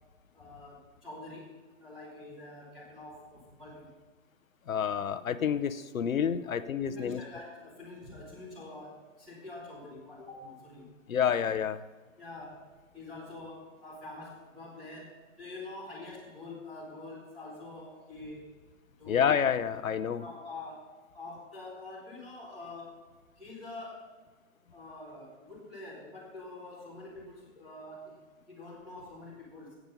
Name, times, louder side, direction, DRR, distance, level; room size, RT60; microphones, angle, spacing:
voice 1, 0.3-3.9 6.4-10.9 12.2-12.6 12.9-18.4 19.0-19.2 20.1-20.9 21.1-23.0 23.4-24.1 24.7-29.7, left 2 dB, ahead, -11 dB, 0.9 m, -46 dB
voice 2, 4.7-7.2 11.1-11.8 19.1-20.2, left 8 dB, 80° left, 14 dB, 0.9 m, -28 dB
17.5 x 6.2 x 5.3 m, 1.3 s
hypercardioid pair, 175°, 40 cm